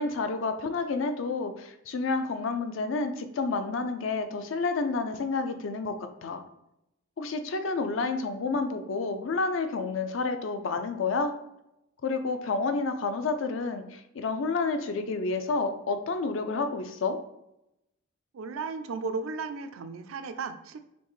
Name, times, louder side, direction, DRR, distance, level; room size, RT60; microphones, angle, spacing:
voice 1, 0.0-6.0 6.2-6.4 7.2-11.3 12.0-17.2, left 3 dB, 70° left, 8 dB, 0.4 m, -29 dB
voice 2, 18.3-20.8, right 4 dB, 85° right, 9 dB, 0.4 m, -35 dB
4.3 x 3.1 x 3.1 m, 0.84 s
head